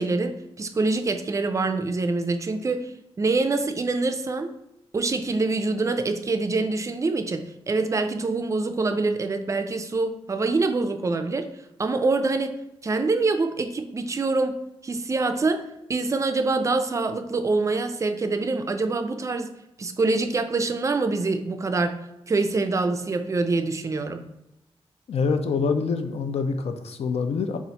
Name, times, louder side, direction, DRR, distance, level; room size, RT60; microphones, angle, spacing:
voice 1, 0.0-2.9 3.2-4.5 4.9-11.5 11.8-12.5 12.8-14.6 14.8-15.6 15.9-19.5 19.8-24.3, right 3 dB, 30° right, 8 dB, 0.3 m, -25 dB
voice 2, 25.1-27.6, left 5 dB, 85° left, 7 dB, 0.4 m, -25 dB
4.0 x 2.4 x 4.2 m, 0.86 s
wide cardioid pair, 145°, 10 cm